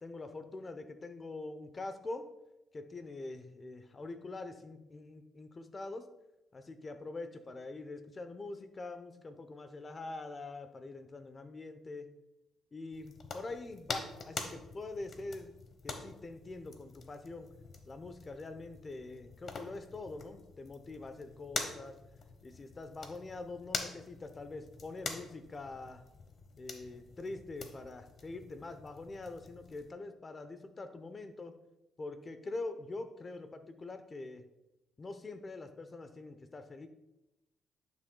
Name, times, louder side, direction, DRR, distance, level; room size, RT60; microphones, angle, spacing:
voice 1, 0.0-2.3 2.7-6.1 6.5-12.1 12.7-15.5 15.8-17.5 17.9-22.0 22.4-26.0 26.6-31.5 32.0-34.5 35.0-36.9, left 2 dB, 35° left, 10 dB, 0.7 m, -44 dB
sound 1, 12.9-29.9, left 4 dB, 50° left, 1.0 m, -45 dB
10.5 x 6.2 x 2.3 m, 0.94 s
cardioid pair, 90°, 0 cm